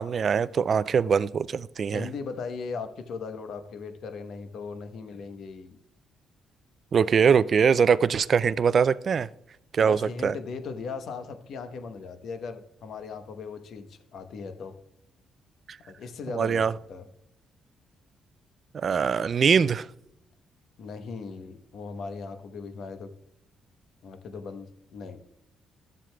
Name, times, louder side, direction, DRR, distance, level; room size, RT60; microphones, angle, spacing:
voice 1, 0.0-2.1 6.9-9.3 9.7-10.3 16.3-16.7 18.7-19.9, right 6 dB, 50° right, 0.3 m, -22 dB
voice 2, 1.9-5.8 9.8-14.7 16.0-17.0 20.8-23.1 24.0-25.2, left 4 dB, 70° left, 0.9 m, -38 dB
13.0 x 7.5 x 2.3 m
cardioid pair, 90°, 0 cm